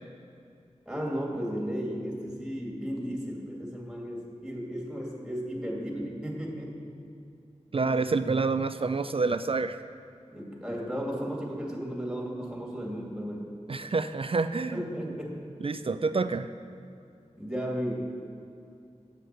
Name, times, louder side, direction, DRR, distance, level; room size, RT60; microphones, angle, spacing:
voice 1, 0.8-6.8 10.3-13.4 14.7-15.4 17.4-17.9, equal, 5° right, -2 dB, 2.4 m, -34 dB
voice 2, 7.7-9.8 13.7-14.8 15.6-16.5, right 4 dB, 50° right, 11 dB, 0.4 m, -27 dB
8.1 x 7.8 x 7.7 m, 2.6 s
wide cardioid pair, 60°, 13 cm